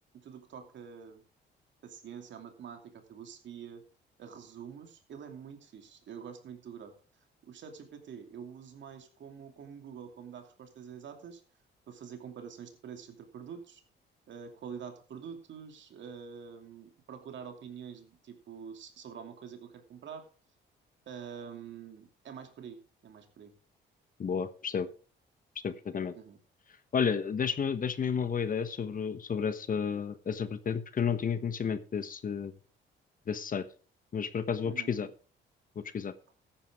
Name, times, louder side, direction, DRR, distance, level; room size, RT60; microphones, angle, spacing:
voice 1, 0.1-1.2 1.8-3.8 4.2-6.9 7.4-11.4 11.9-13.8 14.3-20.3 21.1-23.5 26.1-26.4 34.6-35.1, right 7 dB, 65° right, 5 dB, 2.8 m, -46 dB
voice 2, 24.2-24.9 25.6-26.1 26.9-32.5 33.3-33.6 34.1-35.1 35.9-36.1, left 6 dB, 45° left, 12 dB, 1.2 m, -31 dB
14.0 x 10.0 x 3.6 m, 0.37 s
cardioid pair, 90°, 20 cm